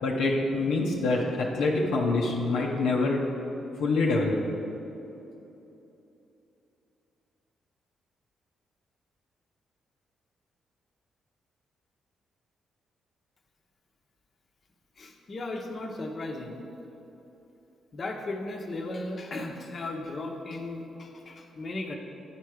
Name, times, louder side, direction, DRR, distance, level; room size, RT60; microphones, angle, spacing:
voice 1, 0.0-3.2 3.8-4.4, left 3 dB, 80° left, -2 dB, 0.7 m, -25 dB
voice 2, 15.0-16.6 17.9-22.0, left 2 dB, 50° left, 2 dB, 0.9 m, -36 dB
9.0 x 4.6 x 4.9 m, 3.0 s
hypercardioid pair, 45°, 0 cm